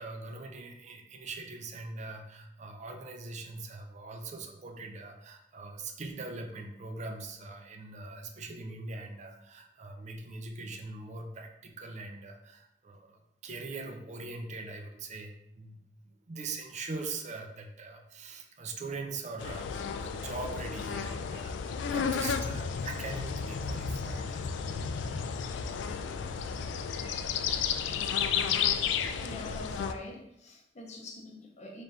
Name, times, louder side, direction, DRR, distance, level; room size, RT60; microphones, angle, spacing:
voice 1, 0.0-15.8 16.0-24.4 27.5-27.7 28.4-28.5 28.9-29.1, right 3 dB, 40° right, 4 dB, 0.4 m, -42 dB
sound 1, 19.4-29.9, left 6 dB, 85° left, 0.3 m, -32 dB
voice 2, 29.2-31.8, left 2 dB, 40° left, 1 dB, 0.7 m, -44 dB
3.4 x 2.5 x 4.0 m, 0.81 s
head